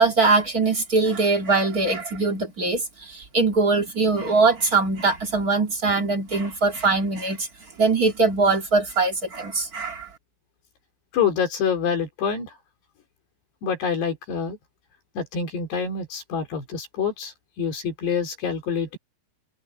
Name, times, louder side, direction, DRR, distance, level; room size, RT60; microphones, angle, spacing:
voice 1, 0.0-2.8 3.1-7.5 7.8-10.1, right 3 dB, 40° right, 1.2 m, -22 dB
voice 2, 11.1-12.5 13.6-14.6 15.2-19.0, left 6 dB, 65° left, 5.3 m, -26 dB
omnidirectional pair, 5.2 m